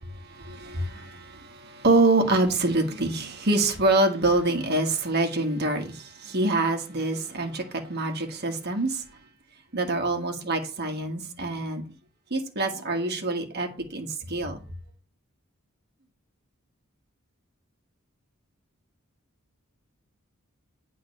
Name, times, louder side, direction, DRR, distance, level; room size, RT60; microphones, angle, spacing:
voice 1, 0.0-9.0 9.7-11.9 12.3-14.6, right 2 dB, 50° right, 1.6 m, -26 dB
9.1 x 3.9 x 6.7 m
head